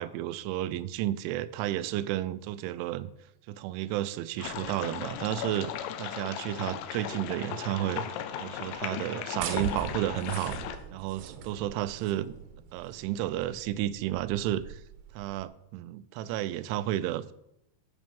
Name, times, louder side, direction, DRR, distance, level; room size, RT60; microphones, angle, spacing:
voice 1, 0.0-3.1 3.5-8.1 8.4-10.6 10.9-12.3 12.7-14.8 15.1-17.3, right 13 dB, 90° right, 15 dB, 3.0 m, -32 dB
sound 1, 4.4-10.8, left 9 dB, 90° left, 3.1 m, -37 dB
sound 2, 9.4-15.4, right 6 dB, 75° right, 2.4 m, -40 dB
13.0 x 6.2 x 5.4 m, 0.80 s
omnidirectional pair, 5.4 m